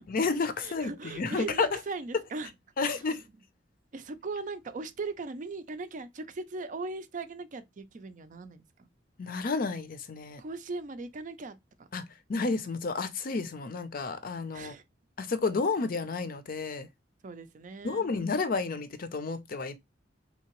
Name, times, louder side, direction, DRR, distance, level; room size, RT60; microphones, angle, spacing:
voice 1, 0.0-1.8 2.8-3.2 9.2-10.4 11.9-14.8 15.2-16.9 17.8-19.8, left 4 dB, 50° left, 0.5 m, -31 dB
voice 2, 0.6-2.5 2.9-3.2 3.9-8.9 10.4-11.9 14.5-14.8 17.2-18.1, right 3 dB, 45° right, 0.5 m, -39 dB
3.6 x 2.8 x 2.9 m
head